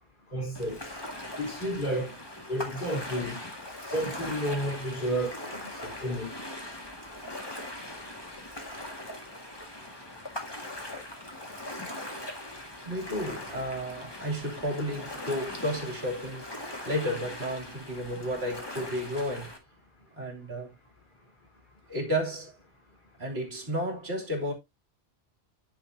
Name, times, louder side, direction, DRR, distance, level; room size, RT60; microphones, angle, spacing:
voice 1, 0.3-0.8 1.4-2.1 2.5-3.4 3.9-6.3, equal, 40° left, 3.6 m, -31 dB
Ocean, 0.5-19.6, left 1 dB, 20° left, 1.9 m, -40 dB
voice 2, 12.8-19.5 20.1-20.7 21.9-22.5 23.2-24.5, equal, 55° right, 3.1 m, -32 dB
9.8 x 7.6 x 2.7 m
omnidirectional pair, 1.2 m